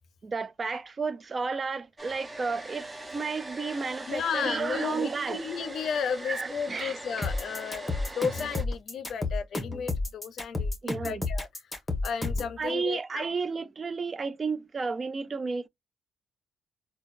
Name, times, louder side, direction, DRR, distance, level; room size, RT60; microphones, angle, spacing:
voice 1, 0.2-5.5 6.3-7.3 10.8-11.3 12.6-15.7, right 4 dB, 35° right, 0.3 m, -32 dB
Domestic sounds home sounds, 2.0-8.6, right 1 dB, 20° right, 0.8 m, -42 dB
voice 2, 4.1-11.5 12.0-13.2, left 6 dB, 65° left, 0.5 m, -33 dB
sound 1, 7.2-12.5, left 2 dB, 15° left, 1.2 m, -31 dB
3.8 x 2.2 x 2.5 m
cardioid pair, 90°, 0 cm